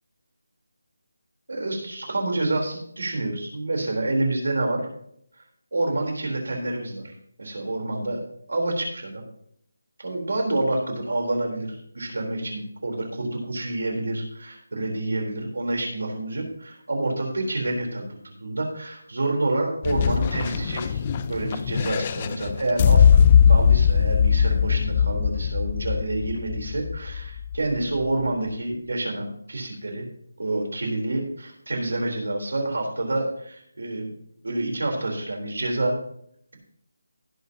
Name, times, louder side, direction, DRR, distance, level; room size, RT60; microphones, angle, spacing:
voice 1, 1.5-4.9 5.7-7.1 7.4-8.2 8.5-9.2 10.0-21.0 21.3-30.1 30.4-34.1 34.4-36.0, right 2 dB, 60° right, 1 dB, 4.1 m, -28 dB
sound 1, 19.8-27.8, left 7 dB, 15° left, 0.3 m, -20 dB
18.0 x 8.3 x 3.0 m, 0.69 s
figure-of-eight pair, 180°, 0 cm